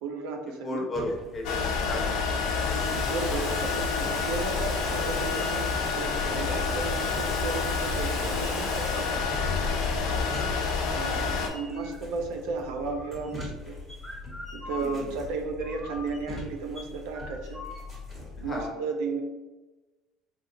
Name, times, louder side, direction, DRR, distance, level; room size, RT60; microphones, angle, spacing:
voice 1, 0.0-0.9 2.7-9.3 10.9-13.8 14.5-17.6 18.4-19.2, right 4 dB, 85° right, 4 dB, 0.5 m, -34 dB
voice 2, 0.6-2.1 10.1-10.2 14.8-15.0 18.5-18.7, left 1 dB, 25° left, 0 dB, 0.8 m, -34 dB
sound 1, 0.9-18.7, left 2 dB, 20° right, 1.4 m, -43 dB
sound 2, 1.4-11.5, left 5 dB, 75° left, 0.6 m, -28 dB
Water tap faucet, 2.3-10.1 10.5-11.8, right 2 dB, 55° right, 1.3 m, -44 dB
3.8 x 2.4 x 2.7 m, 1.1 s
cardioid pair, 130°, 0 cm